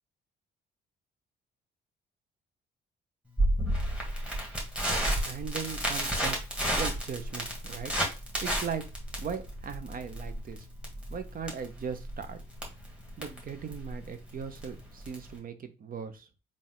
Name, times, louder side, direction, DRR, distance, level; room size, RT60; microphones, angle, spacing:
Crackle, 3.4-15.4, right 1 dB, 5° right, 1.8 m, -32 dB
voice 1, 4.8-6.4 6.7-7.9 8.4-8.8 9.2-10.7 11.1-12.4 13.2-16.3, right 6 dB, 45° right, 9 dB, 0.8 m, -38 dB
4.0 x 2.5 x 3.8 m, 0.32 s
cardioid pair, 90°, 20 cm